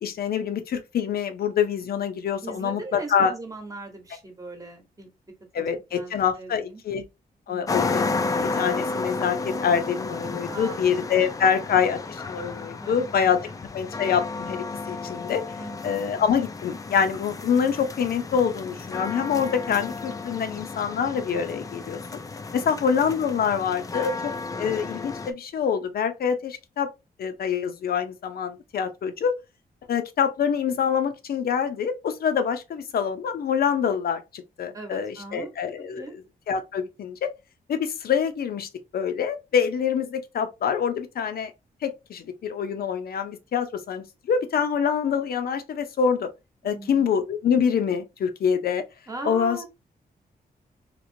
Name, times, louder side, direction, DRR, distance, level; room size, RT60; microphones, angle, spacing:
voice 1, 0.0-3.3 5.5-7.0 7.5-13.4 13.7-15.4 15.8-22.0 22.5-26.9 27.2-29.4 29.9-36.0 36.5-37.3 37.7-41.5 41.8-46.3 46.6-48.8 49.2-49.6, left 7 dB, 70° left, 0.6 m, -25 dB
voice 2, 2.4-5.1 5.6-5.7 5.9-6.8 7.5-7.9 10.5-10.8 11.2-11.8 12.8-13.0 13.5-13.6 15.6-15.9 22.5-22.9 34.7-35.5 36.0-36.1 46.6-47.1 49.1-49.7, right 2 dB, 20° right, 1.0 m, -40 dB
sound 1, 7.7-25.3, left 3 dB, 20° left, 0.4 m, -32 dB
2.9 x 2.9 x 2.6 m
wide cardioid pair, 135°, 16 cm